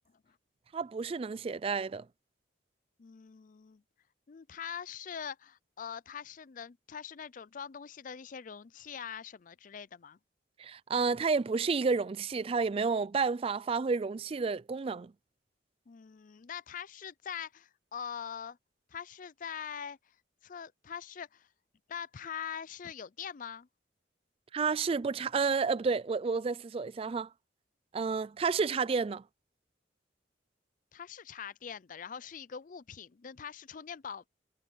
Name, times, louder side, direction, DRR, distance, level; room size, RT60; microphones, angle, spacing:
voice 1, 0.7-2.1 10.6-15.1 24.5-27.3 27.9-29.2, right 5 dB, 30° right, 0.3 m, -30 dB
voice 2, 3.0-3.8 4.3-10.2 15.9-18.6 18.9-20.2 20.4-21.5 21.9-23.7 30.9-34.3, left 7 dB, 45° left, 0.4 m, -43 dB
head